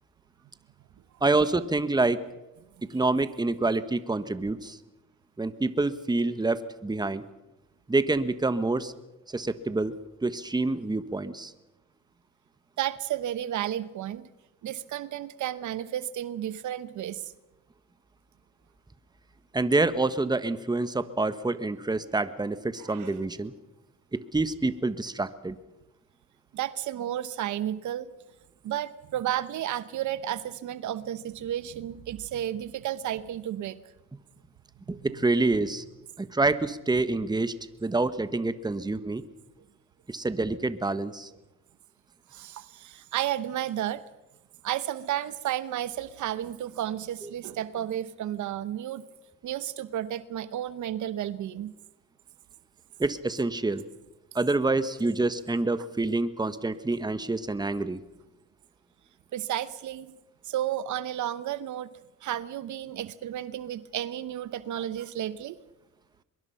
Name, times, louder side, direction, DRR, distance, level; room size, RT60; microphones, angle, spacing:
voice 1, 1.2-2.2 2.8-4.8 5.4-7.2 7.9-8.9 9.3-11.5 19.5-23.5 24.1-25.5 34.9-35.8 36.2-37.5 37.8-39.2 40.1-41.3 47.2-47.3 53.0-53.8 54.3-58.0, right 2 dB, 15° right, 12 dB, 1.3 m, -27 dB
voice 2, 12.8-14.3 14.6-17.3 22.8-23.1 26.5-28.1 28.6-33.8 42.3-44.0 44.6-49.0 49.4-51.7 59.3-60.2 60.5-61.9 62.2-65.6, right 11 dB, 75° right, 15 dB, 1.0 m, -32 dB
23.5 x 22.0 x 5.8 m, 1.0 s
cardioid pair, 90°, 30 cm